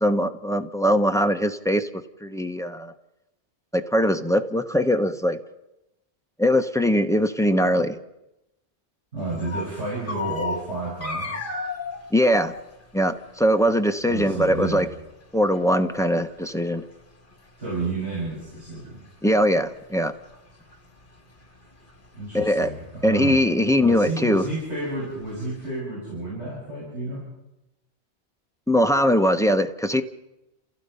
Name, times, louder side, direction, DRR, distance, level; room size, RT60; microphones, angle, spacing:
voice 1, 0.0-1.9 2.2-2.9 3.7-5.4 6.4-8.0 12.1-12.5 12.9-14.9 15.3-16.8 19.2-20.1 22.3-22.7 23.0-24.4 28.7-30.0, equal, 5° left, 8 dB, 0.7 m, -21 dB
voice 2, 9.1-11.5 14.1-14.9 17.6-19.0 22.1-23.4 23.8-27.3, right 2 dB, 85° right, -7 dB, 7.0 m, -31 dB
sound 1, 9.2-25.8, left 3 dB, 50° left, 2.4 m, -38 dB
30.0 x 15.5 x 5.6 m, 0.92 s
omnidirectional pair, 1.1 m